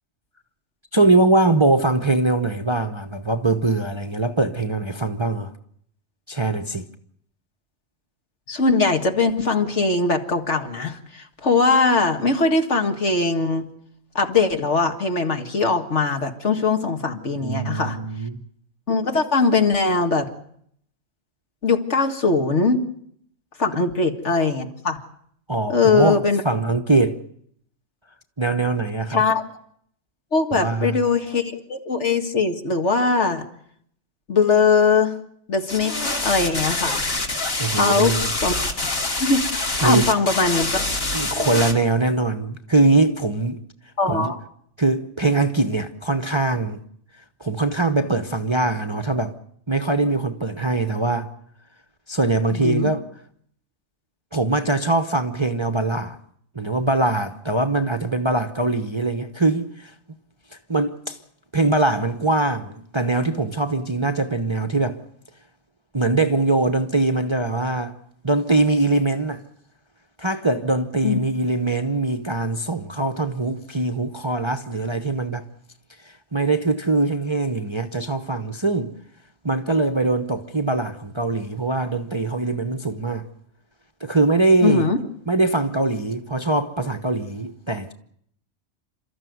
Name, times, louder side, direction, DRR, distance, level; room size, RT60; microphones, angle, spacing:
voice 1, 0.9-5.5 6.3-6.9 17.4-18.5 25.5-27.2 28.4-29.2 30.5-31.0 37.6-38.3 39.8-40.1 41.1-43.6 44.1-44.3 44.8-46.8 47.4-49.3 49.7-51.3 52.1-53.0 54.3-56.2 56.5-59.9 60.7-61.2 61.5-65.0 65.9-68.0 68.2-69.4 70.2-75.4 76.0-78.9 79.4-83.3 84.0-84.9 85.3-87.9, right 2 dB, 25° right, 0.9 m, -22 dB
voice 2, 8.5-13.7 14.2-18.0 18.9-20.3 21.6-22.8 23.6-25.0 25.7-26.4 29.1-29.4 30.3-33.5 34.3-35.1 35.5-35.9 36.2-37.0 37.7-38.1 38.4-38.6 39.2-40.9 44.0-44.4 52.5-52.9 71.0-71.2 84.6-85.0, left 4 dB, 55° left, 2.2 m, -21 dB
sound 1, 35.7-41.7, left 2 dB, 70° left, 3.2 m, -25 dB
29.5 x 13.5 x 9.5 m
omnidirectional pair, 1.4 m